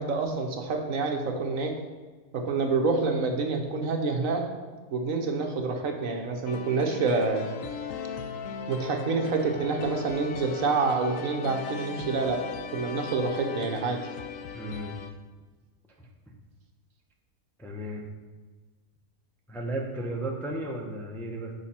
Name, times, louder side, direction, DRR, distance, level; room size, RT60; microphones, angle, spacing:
voice 1, 0.0-1.8 2.3-4.4 4.9-7.4 8.7-12.4 12.7-14.1, right 4 dB, 70° right, 3 dB, 1.3 m, -27 dB
sound 1, 6.4-15.1, left 6 dB, 70° left, 0.9 m, -38 dB
voice 2, 14.5-14.9 16.0-16.3 17.6-18.1 19.5-21.5, right 1 dB, ahead, 0 dB, 0.6 m, -34 dB
8.1 x 5.4 x 4.2 m, 1.3 s
omnidirectional pair, 1.5 m